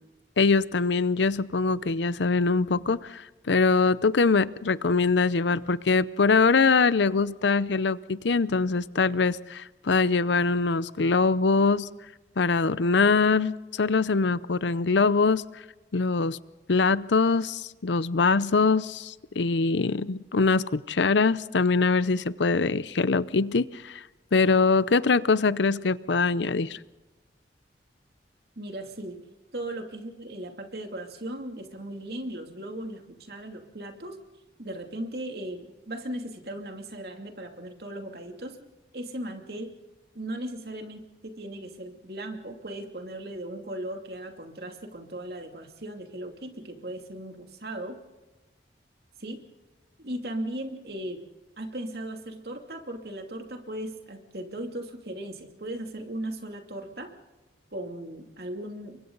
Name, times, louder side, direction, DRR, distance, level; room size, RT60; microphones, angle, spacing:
voice 1, 0.4-11.9 12.4-15.6 15.9-16.4 16.7-24.0 24.3-26.8, left 4 dB, 85° left, 17 dB, 0.7 m, -23 dB
voice 2, 28.6-29.2 29.5-34.2 34.6-38.6 38.9-39.7 40.1-48.0 49.2-49.4 50.0-51.2 51.6-57.1 57.7-59.0, right 1 dB, 60° right, 4 dB, 2.7 m, -37 dB
30.0 x 23.5 x 4.0 m, 1.1 s
head